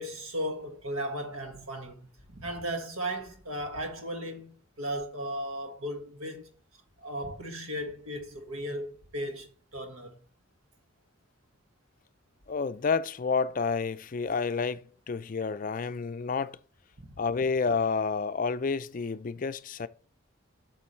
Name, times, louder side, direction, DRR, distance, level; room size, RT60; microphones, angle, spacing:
voice 1, 0.0-6.5 7.0-10.2 17.0-17.1, equal, 90° right, 1.6 m, -36 dB
voice 2, 12.5-16.6 17.2-19.9, left 5 dB, 40° left, 0.4 m, -29 dB
8.4 x 6.3 x 3.1 m
head